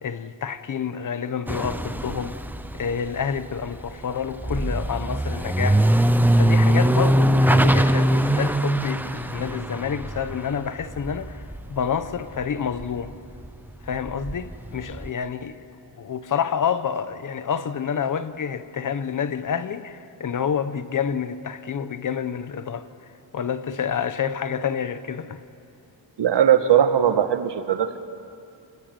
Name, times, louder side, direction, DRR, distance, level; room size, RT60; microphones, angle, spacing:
voice 1, 0.0-2.4 2.7-5.8 6.4-13.1 13.8-15.7 15.9-22.9 23.3-25.4, left 7 dB, 40° left, 1.1 m, -28 dB
sound 1, 1.5-12.5 12.7-15.1, right 1 dB, 5° right, 0.7 m, -22 dB
voice 2, 26.2-28.0, right 9 dB, 60° right, 1.7 m, -19 dB
29.0 x 20.5 x 9.4 m
wide cardioid pair, 160°, 46 cm